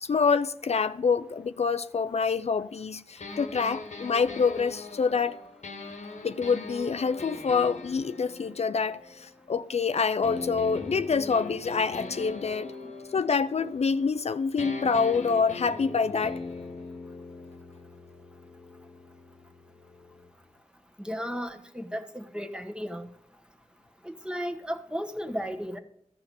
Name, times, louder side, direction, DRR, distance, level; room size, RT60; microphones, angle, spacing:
voice 1, 0.0-5.3 6.2-12.7 13.1-16.4, left 5 dB, 65° left, 0.4 m, -26 dB
sound 1, 3.2-9.7 10.2-14.3 14.6-20.3, left 3 dB, 80° left, 1.1 m, -41 dB
voice 2, 21.0-23.1 24.0-25.8, equal, 10° right, 1.2 m, -34 dB
14.0 x 5.8 x 7.0 m
cardioid pair, 50°, 12 cm